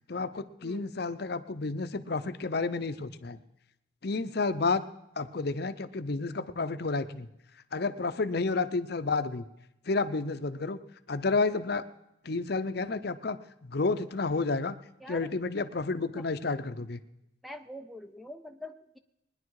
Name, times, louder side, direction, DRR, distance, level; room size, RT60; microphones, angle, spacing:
voice 1, 0.1-3.4 4.0-4.8 5.2-7.3 7.7-9.4 9.9-10.8 11.1-11.8 12.2-13.4 13.6-14.7 15.1-17.0, left 3 dB, 55° left, 11 dB, 0.7 m, -30 dB
voice 2, 17.4-19.0, left 1 dB, ahead, 8 dB, 0.5 m, -44 dB
20.5 x 10.5 x 4.8 m, 0.86 s
head